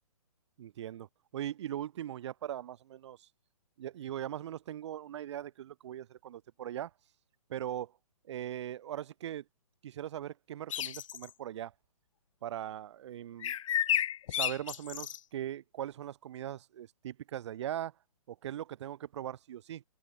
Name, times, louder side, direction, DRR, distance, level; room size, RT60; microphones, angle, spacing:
voice 1, 0.6-1.1 1.3-3.2 3.8-6.9 7.5-7.9 8.3-9.4 9.8-11.7 12.4-13.5 14.3-17.9 18.3-19.8, right 11 dB, 50° right, 1.5 m, -40 dB
sound 1, 10.7-11.3 13.4-15.2, left 10 dB, 60° left, 0.4 m, -32 dB
open air
hypercardioid pair, 150°, 19 cm